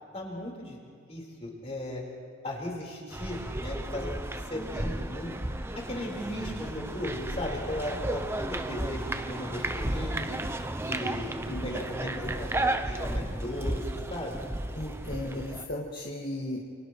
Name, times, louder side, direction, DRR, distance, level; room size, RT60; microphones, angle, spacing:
voice 1, 0.1-0.8 1.1-2.0 2.4-4.1 4.5-5.3 5.7-10.4 10.8-13.8 14.1-14.4, left 1 dB, 30° left, -2 dB, 4.7 m, -36 dB
sound 1, 3.1-15.7, right 1 dB, 10° right, 0.7 m, -33 dB
voice 2, 11.5-12.1 14.7-16.6, left 1 dB, 45° left, -3 dB, 2.1 m, -36 dB
29.0 x 28.5 x 3.3 m, 2.1 s
head